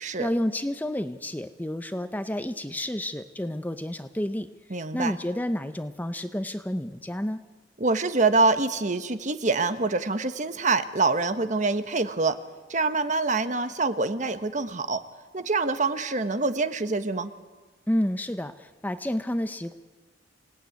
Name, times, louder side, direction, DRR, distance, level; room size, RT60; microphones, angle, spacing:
voice 1, 0.0-7.4 17.9-19.7, left 1 dB, 10° left, 10 dB, 0.7 m, -30 dB
voice 2, 4.7-5.2 7.8-12.4 12.7-15.0 15.3-17.3, right 3 dB, 40° right, 10 dB, 1.2 m, -25 dB
27.5 x 18.0 x 9.4 m, 1.4 s
head